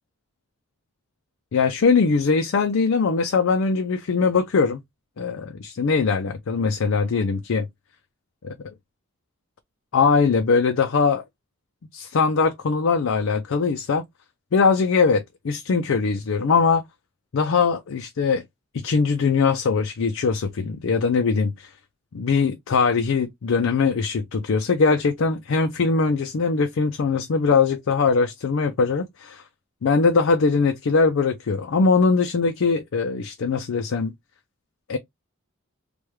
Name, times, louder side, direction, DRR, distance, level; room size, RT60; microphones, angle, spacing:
voice 1, 1.5-4.8 5.2-7.7 8.4-8.6 9.9-11.2 11.9-14.0 14.5-16.8 17.3-18.4 18.7-21.7 22.1-29.4 29.8-34.1 34.9-35.0, left 4 dB, 65° left, 0.4 m, -21 dB
3.3 x 2.2 x 3.0 m
head